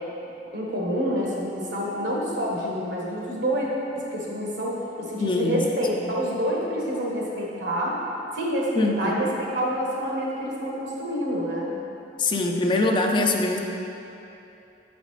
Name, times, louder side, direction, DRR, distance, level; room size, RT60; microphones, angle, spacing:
voice 1, 0.5-3.7 3.9-8.0 8.3-11.7, equal, 80° right, -4 dB, 1.3 m, -27 dB
voice 2, 5.2-5.6 6.0-6.1 8.7-9.3 12.2-13.6, left 2 dB, 25° left, 2 dB, 0.4 m, -23 dB
7.4 x 5.1 x 3.2 m, 2.9 s
head